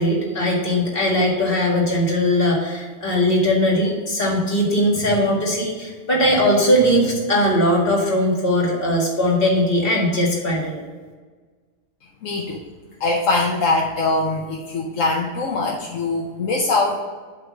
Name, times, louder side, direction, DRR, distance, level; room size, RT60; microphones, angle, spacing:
voice 1, 0.0-10.8, equal, 45° left, -2 dB, 2.1 m, -19 dB
voice 2, 12.2-12.6 13.0-17.0, left 3 dB, 85° left, -1 dB, 1.2 m, -22 dB
7.9 x 3.6 x 6.4 m, 1.4 s
omnidirectional pair, 1.3 m